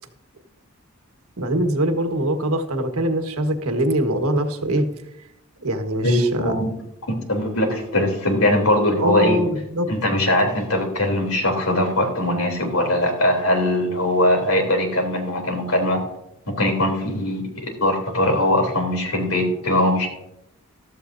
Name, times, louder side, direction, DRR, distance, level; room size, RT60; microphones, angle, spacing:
voice 1, 1.4-4.9 5.6-6.5 9.0-9.9, right 1 dB, 85° right, 6 dB, 1.4 m, -23 dB
voice 2, 6.0-6.7 7.3-9.4 9.9-16.0 16.6-20.1, left 1 dB, 80° left, 3 dB, 3.3 m, -21 dB
14.5 x 13.0 x 2.7 m, 0.82 s
head